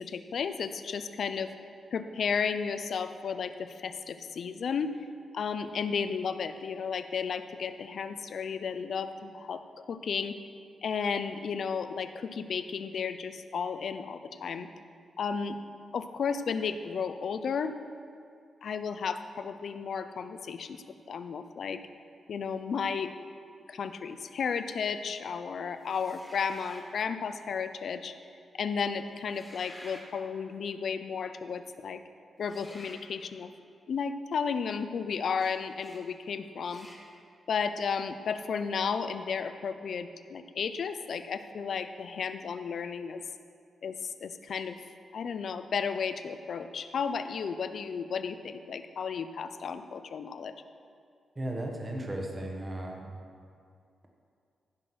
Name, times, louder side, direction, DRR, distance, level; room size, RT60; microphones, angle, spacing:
voice 1, 0.0-1.5 1.9-4.9 5.3-9.6 9.9-10.4 10.8-14.7 15.2-15.6 15.9-17.7 18.6-21.8 22.3-23.1 23.7-28.1 28.5-32.0 32.4-33.5 33.9-36.9 37.5-43.2 43.8-44.7 45.1-50.5, left 6 dB, 55° left, 10 dB, 0.6 m, -33 dB
sound 1, 25.8-26.9 29.2-30.1 32.4-33.0 35.4-35.5 35.8-36.0 36.6-37.0, left 1 dB, 10° left, 1.7 m, -50 dB
voice 2, 51.4-53.2, right 1 dB, 20° right, 0 dB, 1.3 m, -35 dB
15.0 x 6.0 x 6.2 m, 2.4 s
wide cardioid pair, 160°, 0 cm